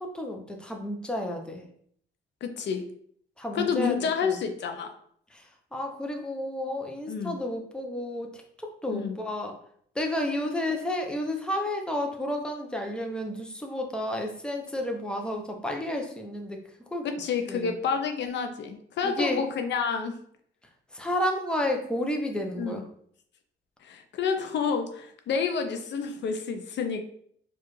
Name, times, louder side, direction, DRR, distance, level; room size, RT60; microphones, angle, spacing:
voice 1, 0.0-1.6 3.4-4.4 5.3-5.4 5.7-8.4 8.8-9.5 10.0-16.6 16.9-17.1 17.5-17.7 19.0-19.4 20.9-22.8, left 1 dB, 5° left, 2 dB, 0.7 m, -31 dB
voice 2, 2.4-2.8 3.5-4.9 7.1-7.4 8.9-9.2 17.0-20.1 22.6-22.8 23.8-27.0, left 6 dB, 65° left, 6 dB, 0.5 m, -29 dB
4.6 x 2.4 x 3.1 m, 0.64 s
cardioid pair, 90°, 20 cm